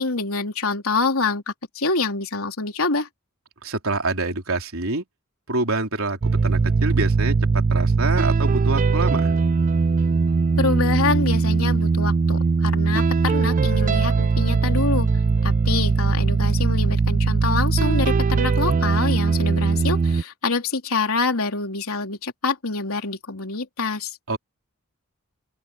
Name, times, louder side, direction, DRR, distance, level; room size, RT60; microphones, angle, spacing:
voice 1, 0.0-3.1 10.6-15.1 15.4-24.2, left 3 dB, 85° left, 3.5 m, -26 dB
voice 2, 3.6-5.0 5.5-9.4 24.3-24.4, right 2 dB, 75° right, 3.9 m, -26 dB
sound 1, 6.2-20.2, right 4 dB, 35° right, 0.4 m, -20 dB
open air
head